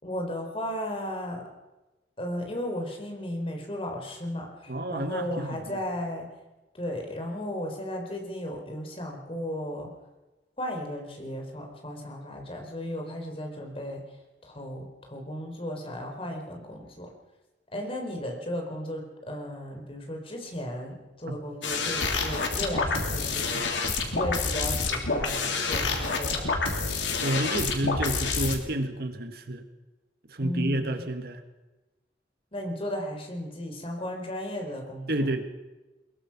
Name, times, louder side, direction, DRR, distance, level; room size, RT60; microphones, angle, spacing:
voice 1, 0.0-1.5 2.2-6.3 6.7-9.9 10.6-14.0 14.4-17.1 17.7-26.5 30.4-31.1 32.5-35.3, left 1 dB, 30° left, 3 dB, 4.1 m, -35 dB
voice 2, 4.7-5.8 27.2-29.6 30.3-31.4 35.1-35.4, right 1 dB, 60° right, 7 dB, 1.7 m, -30 dB
sound 1, 21.6-28.6, left 4 dB, 90° left, 3.3 m, -28 dB
22.0 x 22.0 x 6.0 m, 1.1 s
head